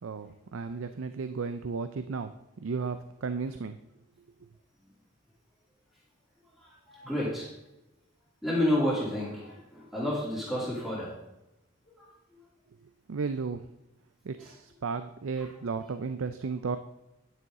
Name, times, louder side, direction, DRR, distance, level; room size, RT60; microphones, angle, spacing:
voice 1, 0.0-3.8 13.1-13.7 14.2-16.8, right 4 dB, 75° right, 10 dB, 0.5 m, -34 dB
voice 2, 6.6-7.5 8.4-11.1 11.8-12.1 15.4-15.5, left 1 dB, ahead, -7 dB, 2.9 m, -30 dB
10.5 x 9.2 x 3.7 m, 0.93 s
head